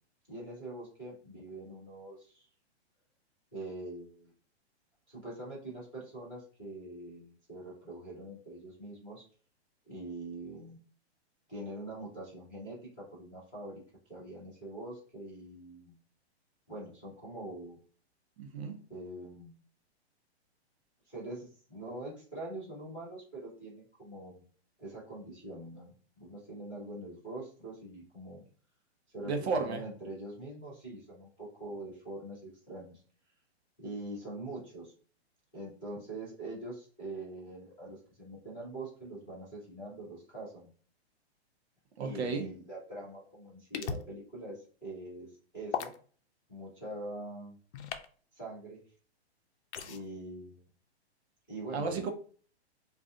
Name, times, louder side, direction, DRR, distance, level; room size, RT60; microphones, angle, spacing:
voice 1, 0.3-2.4 3.5-4.3 5.1-9.2 9.9-10.8 11.5-13.8 14.1-15.9 16.7-17.8 18.9-19.5 21.0-24.4 24.8-28.4 29.1-33.0 33.8-34.9 35.5-40.7 42.0-45.9 46.5-47.6 48.3-48.8 49.9-50.7 51.5-52.1, right 2 dB, 5° right, -23 dB, 0.3 m, -44 dB
voice 2, 18.4-18.8 29.2-29.8 42.0-42.5 49.8-49.9 51.7-52.1, right 4 dB, 70° right, 5 dB, 0.8 m, -33 dB
sound 1, 43.7-44.1 45.7-46.0 47.7-48.1 49.7-50.0, left 7 dB, 85° left, 0.5 m, -36 dB
2.5 x 2.4 x 3.7 m, 0.43 s
hypercardioid pair, 175°, 33 cm